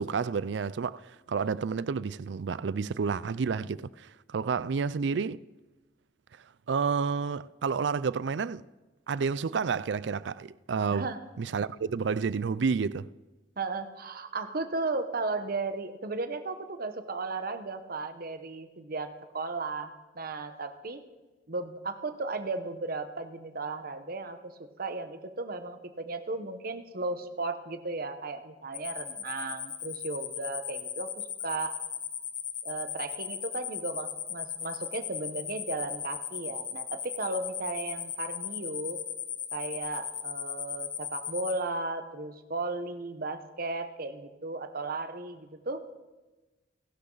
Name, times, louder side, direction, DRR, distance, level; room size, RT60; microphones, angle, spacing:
voice 1, 0.0-5.4 6.7-8.6 9.1-11.1 11.4-13.1, right 5 dB, 70° right, 0.4 m, -30 dB
voice 2, 13.6-21.0 21.5-31.8 32.6-39.0 39.5-45.8, right 3 dB, 55° right, 1.2 m, -35 dB
sound 1, 28.7-41.5, left 9 dB, 45° left, 1.7 m, -36 dB
29.5 x 12.0 x 4.0 m
head